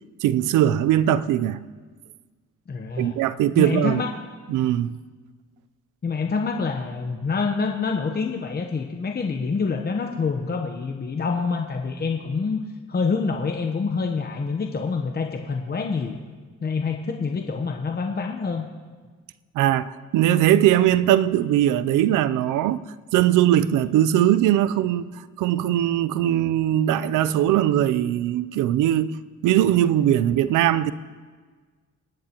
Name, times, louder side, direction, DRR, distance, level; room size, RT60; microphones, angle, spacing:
voice 1, 0.2-1.6 3.0-4.0 4.5-5.0 19.5-22.8 23.1-25.1 25.4-29.2 29.4-30.9, right 12 dB, 90° right, 0.6 m, -20 dB
voice 2, 2.7-3.2 3.6-4.2 6.0-12.6 12.9-16.2 16.6-18.7, left 4 dB, 30° left, 1.0 m, -26 dB
28.0 x 10.0 x 3.0 m
cardioid pair, 90°, 30 cm